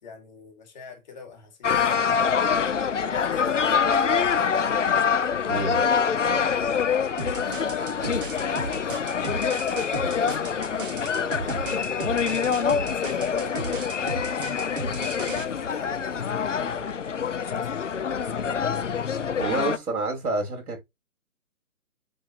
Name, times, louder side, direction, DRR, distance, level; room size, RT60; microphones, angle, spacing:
voice 1, 0.0-2.4 3.1-5.1 5.9-12.4 12.9-14.4 14.8-18.8, left 6 dB, 30° left, 2.7 m, -41 dB
sound 1, 1.6-19.8, left 6 dB, 55° left, 1.0 m, -25 dB
voice 2, 5.4-5.8 19.4-20.8, right 3 dB, 85° right, 3.2 m, -28 dB
sound 2, 7.2-15.4, right 4 dB, 35° right, 1.5 m, -35 dB
9.1 x 4.5 x 3.1 m
hypercardioid pair, 170°, 44 cm